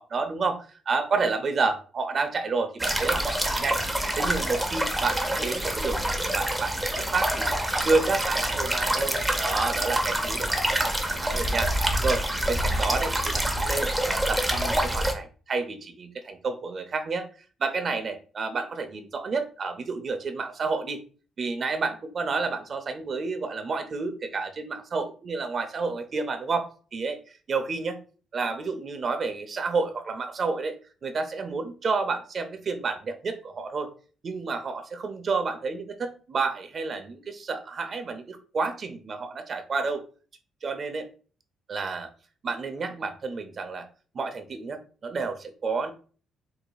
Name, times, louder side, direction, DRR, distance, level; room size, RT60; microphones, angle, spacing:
voice 1, 0.0-3.8 4.2-7.5 7.8-17.3 17.6-21.0 21.4-28.0 28.3-33.9 34.2-40.0 40.6-41.1 41.7-42.1 42.4-43.9 44.1-45.9, right 4 dB, 45° right, 8 dB, 0.7 m, -30 dB
sound 1, 2.8-15.1, right 1 dB, 10° right, 0.7 m, -26 dB
4.7 x 2.8 x 2.3 m, 0.38 s
cardioid pair, 90°, 0 cm